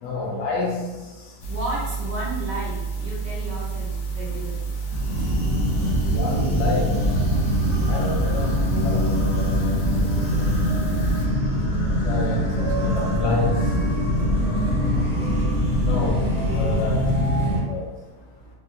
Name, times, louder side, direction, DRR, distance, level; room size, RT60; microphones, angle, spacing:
voice 1, 0.0-0.8 6.1-6.9 7.9-8.5 8.8-9.2 9.9-10.1 11.8-13.6 15.8-16.2 16.5-17.1 17.4-17.8, left 2 dB, 80° left, -3 dB, 1.3 m, -28 dB
sound 1, 1.4-11.3, right 5 dB, 65° left, 0.9 m, -30 dB
voice 2, 1.5-4.7 7.9-8.1 15.3-15.6, right 1 dB, 80° right, -4 dB, 1.6 m, -33 dB
sound 2, 4.9-17.6, equal, 10° left, 0.9 m, -23 dB
4.2 x 2.8 x 2.5 m, 1.2 s
omnidirectional pair, 1.8 m